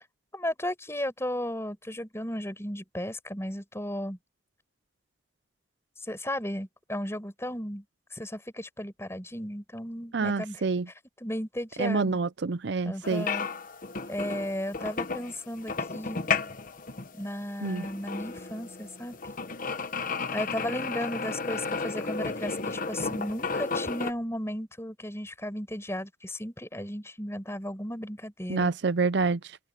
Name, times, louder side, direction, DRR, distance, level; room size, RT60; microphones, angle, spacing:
voice 1, 0.3-4.2 6.1-7.8 8.1-10.6 11.2-12.2 12.8-13.5 14.1-16.2 17.1-19.2 20.3-28.7, equal, 15° left, 6.2 m, -35 dB
voice 2, 10.1-10.9 11.8-13.3 17.6-17.9 28.5-29.6, right 4 dB, 60° right, 0.5 m, -27 dB
sound 1, 13.0-24.1, left 4 dB, 45° left, 1.1 m, -33 dB
open air
head